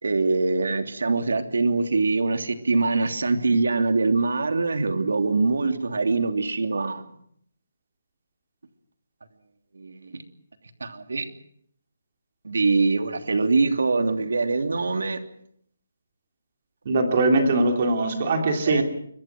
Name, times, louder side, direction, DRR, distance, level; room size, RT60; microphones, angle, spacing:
voice 1, 0.0-7.2 9.7-10.2 10.8-11.2 12.4-15.2 17.6-17.7 18.6-18.8, right 3 dB, 80° right, 6 dB, 3.0 m, -23 dB
voice 2, 16.8-18.8, right 2 dB, 30° right, 3 dB, 3.3 m, -21 dB
26.0 x 23.5 x 6.2 m, 0.67 s
hypercardioid pair, 175°, 0 cm